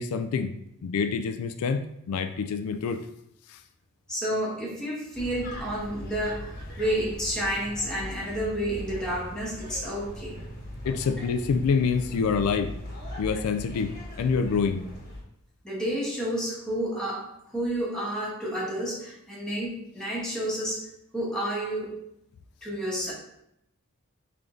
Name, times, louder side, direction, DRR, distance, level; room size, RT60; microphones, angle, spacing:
voice 1, 0.0-3.0 3.5-3.6 10.9-12.7 13.2-14.9, left 5 dB, 85° left, 8 dB, 0.3 m, -27 dB
voice 2, 4.1-10.4 15.6-20.9 21.1-22.0 22.6-23.1, equal, 5° left, -6 dB, 1.2 m, -30 dB
sound 1, 5.1-15.2, left 1 dB, 45° left, 1.1 m, -39 dB
3.7 x 3.3 x 3.7 m, 0.76 s
head